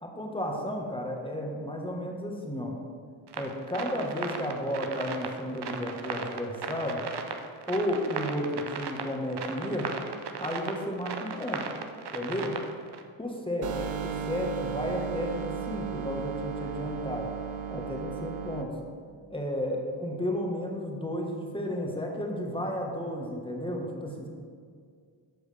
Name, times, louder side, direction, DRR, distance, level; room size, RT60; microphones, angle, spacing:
voice 1, 0.0-2.7 3.4-7.0 7.7-9.9 10.4-11.6 12.1-12.5 13.2-13.7 14.0-17.3 17.7-18.7 19.3-24.3, equal, 10° left, 0 dB, 1.5 m, -33 dB
sound 1, 3.3-13.0, right 6 dB, 55° right, 0.8 m, -37 dB
sound 2, 13.6-18.6, right 7 dB, 85° right, 0.7 m, -35 dB
12.5 x 4.6 x 3.4 m, 2.1 s
cardioid pair, 55°, 49 cm